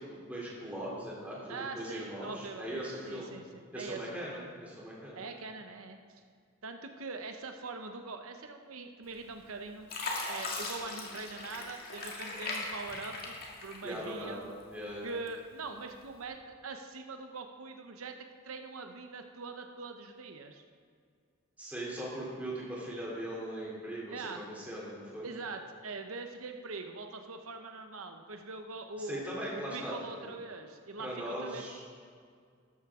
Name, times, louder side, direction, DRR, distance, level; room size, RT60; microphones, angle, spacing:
voice 1, 0.0-3.3 3.7-5.2 13.8-15.1 21.6-25.3 29.0-30.3 31.0-31.8, right 1 dB, 5° right, -6 dB, 3.1 m, -40 dB
voice 2, 1.5-4.4 5.1-6.0 6.6-9.9 10.3-13.4 13.6-14.4 15.0-18.2 18.5-20.6 24.1-24.5 25.2-29.2 29.5-31.7, right 3 dB, 90° right, 5 dB, 0.8 m, -43 dB
Fill (with liquid), 9.1-9.5 9.9-14.3 14.7-15.5 16.1-16.2, left 3 dB, 45° left, 2.0 m, -39 dB
13.0 x 13.0 x 3.7 m, 2.1 s
head